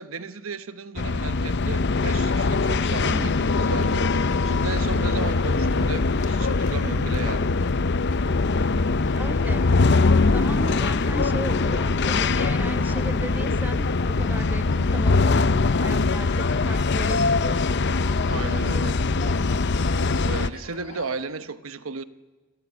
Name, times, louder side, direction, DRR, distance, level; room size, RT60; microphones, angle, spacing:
voice 1, 0.0-7.5 18.3-19.0 20.2-22.0, right 4 dB, 85° right, 1.1 m, -35 dB
sound 1, 1.0-20.5, left 3 dB, 55° left, 0.7 m, -22 dB
voice 2, 3.0-3.5 9.2-9.7 10.2-17.6, right 1 dB, 10° right, 1.2 m, -36 dB
sound 2, 3.7-21.3, left 4 dB, 35° left, 2.2 m, -45 dB
28.0 x 18.5 x 9.6 m
head